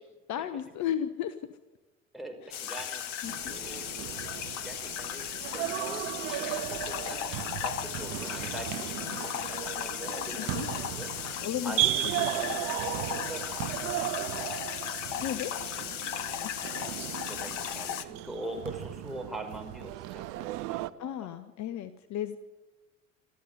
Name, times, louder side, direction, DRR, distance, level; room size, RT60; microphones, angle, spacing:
voice 1, 0.3-1.6 3.2-3.5 9.0-9.2 10.4-10.7 11.4-11.9 12.2-12.3 15.2-15.5 16.4-16.5 21.0-22.4, left 10 dB, 45° left, 12 dB, 1.2 m, -34 dB
voice 2, 2.1-3.0 3.5-3.9 4.5-11.1 11.6-12.6 12.9-14.5 15.3-15.9 16.8-21.2, right 1 dB, ahead, 3 dB, 5.5 m, -43 dB
sound 1, 2.5-18.0, left 10 dB, 70° left, 1.3 m, -36 dB
sound 2, 3.2-20.9, right 17 dB, 55° right, 0.9 m, -36 dB
25.0 x 14.0 x 9.5 m, 1.2 s
hypercardioid pair, 70°, 39 cm